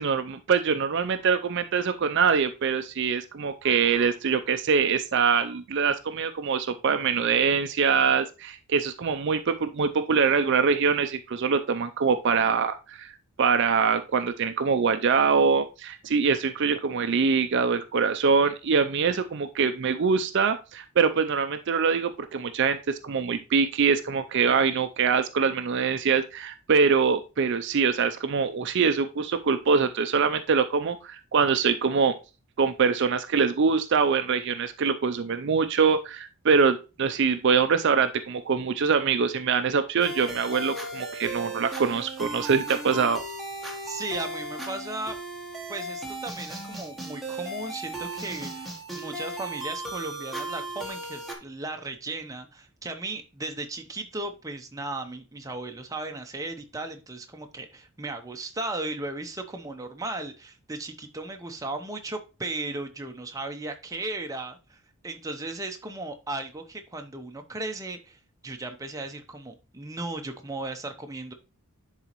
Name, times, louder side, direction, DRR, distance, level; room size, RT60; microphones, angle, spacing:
voice 1, 0.0-13.1 13.4-32.1 32.6-43.2, right 5 dB, 55° right, 9 dB, 0.5 m, -24 dB
sound 1, 40.0-51.3, right 2 dB, ahead, 1.1 m, -36 dB
voice 2, 43.8-45.2 45.7-71.3, right 2 dB, 15° right, 5 dB, 0.7 m, -36 dB
10.5 x 4.1 x 3.0 m, 0.30 s
head